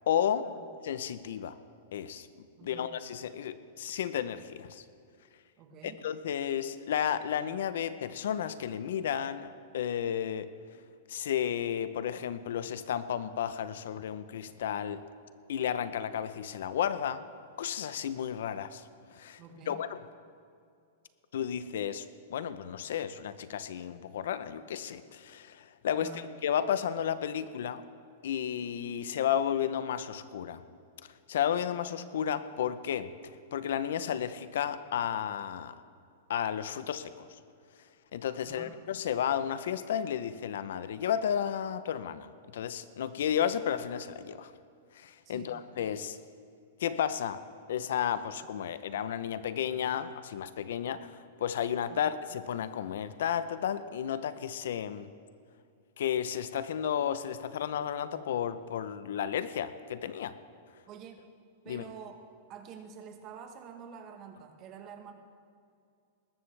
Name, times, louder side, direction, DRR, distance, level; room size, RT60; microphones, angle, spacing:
voice 1, 0.1-0.5 0.8-1.6 1.9-2.3 2.6-4.8 5.8-10.5 11.1-15.0 15.5-17.2 17.6-18.8 19.1-20.0 21.3-27.8 28.2-30.6 31.3-33.1 33.5-35.7 36.3-37.3 38.1-44.5 44.9-46.2 46.8-47.4 47.7-55.1 56.0-60.4 61.7-61.8, left 9 dB, 75° left, 13 dB, 0.6 m, -33 dB
voice 2, 2.6-2.9 5.6-6.0 19.4-19.8 25.9-26.3 38.4-38.8 45.2-45.6 51.9-52.1 60.9-61.2 61.6-62.2 62.5-65.1, right 6 dB, 30° right, 5 dB, 1.2 m, -47 dB
20.0 x 12.5 x 3.3 m, 2.4 s
supercardioid pair, 155°, 0 cm